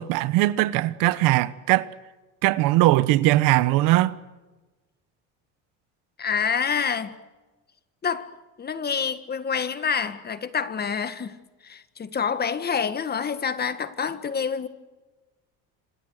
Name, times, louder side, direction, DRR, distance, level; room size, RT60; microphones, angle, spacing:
voice 1, 0.0-1.9 2.4-4.2, right 17 dB, 80° right, 1.2 m, -20 dB
voice 2, 6.2-7.2 8.0-8.3 8.6-11.4 11.6-14.7, left 6 dB, 30° left, 1.7 m, -27 dB
27.5 x 25.5 x 6.5 m
cardioid pair, 120°, 33 cm